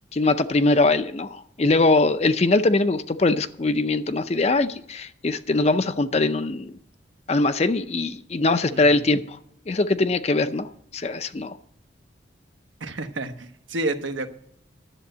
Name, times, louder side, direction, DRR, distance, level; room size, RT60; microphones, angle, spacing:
voice 1, 0.1-6.7 7.3-9.4 9.7-11.6, left 2 dB, 35° left, 11 dB, 0.5 m, -22 dB
voice 2, 8.7-9.0 12.8-14.3, right 2 dB, 90° right, 8 dB, 1.1 m, -30 dB
11.0 x 7.6 x 7.9 m, 0.70 s
head